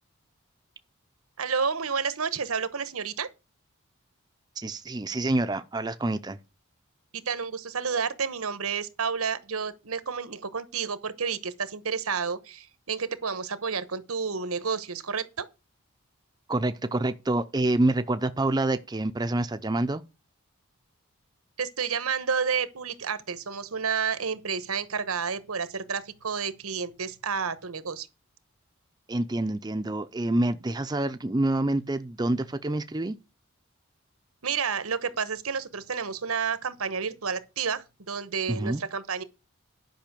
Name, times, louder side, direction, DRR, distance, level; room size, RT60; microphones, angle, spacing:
voice 1, 1.4-3.3 7.2-15.5 21.6-28.1 34.4-39.2, right 6 dB, 85° right, 1.1 m, -30 dB
voice 2, 4.6-6.4 16.5-20.0 29.1-33.2 38.5-38.8, right 2 dB, 20° right, 0.5 m, -27 dB
10.5 x 5.5 x 6.8 m
head